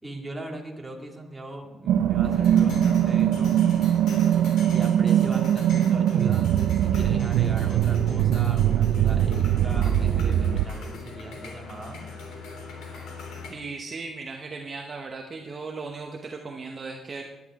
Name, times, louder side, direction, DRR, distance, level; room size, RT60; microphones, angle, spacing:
voice 1, 0.0-3.6 4.7-12.0, right 2 dB, 5° right, -1 dB, 2.2 m, -40 dB
sound 1, 1.9-10.7, right 10 dB, 80° right, 0.5 m, -21 dB
sound 2, 2.2-13.5, left 4 dB, 85° left, 3.4 m, -41 dB
voice 2, 13.5-17.2, right 4 dB, 30° right, 1 dB, 1.0 m, -37 dB
18.5 x 11.5 x 3.7 m, 1.1 s
cardioid pair, 160°, 0 cm